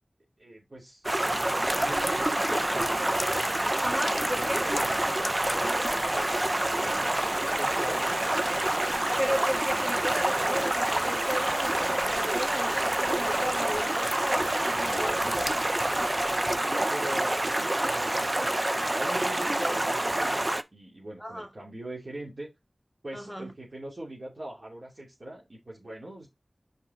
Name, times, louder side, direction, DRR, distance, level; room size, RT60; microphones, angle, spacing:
voice 1, 0.4-3.1 6.1-8.2 16.9-22.5 23.0-26.3, right 1 dB, 60° right, 2.6 m, -41 dB
Stream, 1.0-20.6, right 1 dB, 35° right, 0.5 m, -27 dB
sound 1, 1.1-16.6, left 2 dB, 50° left, 0.4 m, -43 dB
voice 2, 3.8-4.7 9.2-15.5 21.2-21.5 23.1-23.5, equal, ahead, 1.9 m, -34 dB
sound 2, 4.7-5.8 6.4-7.4 8.1-9.1 9.7-10.8 11.4-12.4 13.0-14.1 14.7-15.5, right 2 dB, 80° right, 3.1 m, -40 dB
5.6 x 4.6 x 3.7 m
wide cardioid pair, 50°, 0 cm